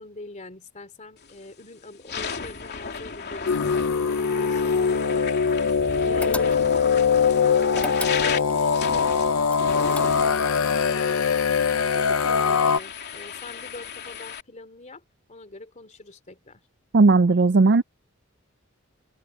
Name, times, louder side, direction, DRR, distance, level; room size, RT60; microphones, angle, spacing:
voice 1, 0.0-5.8 6.1-11.2 11.9-15.0 15.3-16.6, left 2 dB, 35° left, 3.0 m, -44 dB
sound 1, 1.2-1.5 1.9-14.4, left 5 dB, 55° left, 3.1 m, -34 dB
sound 2, 3.5-12.8, left 6 dB, 80° left, 0.7 m, -22 dB
sound 3, 6.2-6.9 7.7-8.6 9.5-10.5, left 2 dB, 5° left, 1.7 m, -35 dB
voice 2, 16.9-17.8, right 3 dB, 55° right, 0.5 m, -16 dB
open air
head